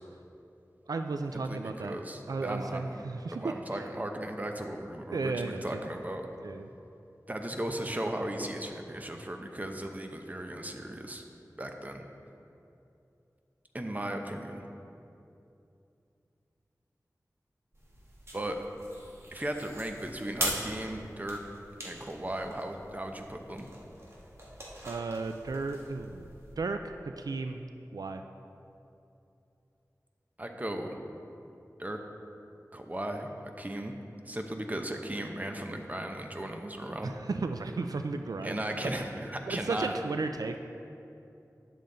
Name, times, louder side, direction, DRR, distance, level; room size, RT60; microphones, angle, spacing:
voice 1, 0.9-2.0 2.3-3.8 5.1-5.8 6.4-6.7 24.8-26.3 26.6-27.6 27.9-28.2 37.0-38.9 39.5-40.6, right 3 dB, 80° right, 6 dB, 0.4 m, -34 dB
voice 2, 1.5-3.0 3.3-6.3 7.3-11.2 11.6-12.1 13.7-14.7 18.3-18.6 19.3-21.4 21.8-23.7 30.4-31.0 31.8-32.0 32.7-33.3 33.6-33.9 34.2-37.1 38.4-39.9, right 1 dB, 25° right, 4 dB, 0.8 m, -36 dB
sound 1, 17.7-26.6, right 1 dB, 45° right, 1.7 m, -42 dB
10.0 x 7.5 x 3.9 m, 2.7 s
wide cardioid pair, 70°, 6 cm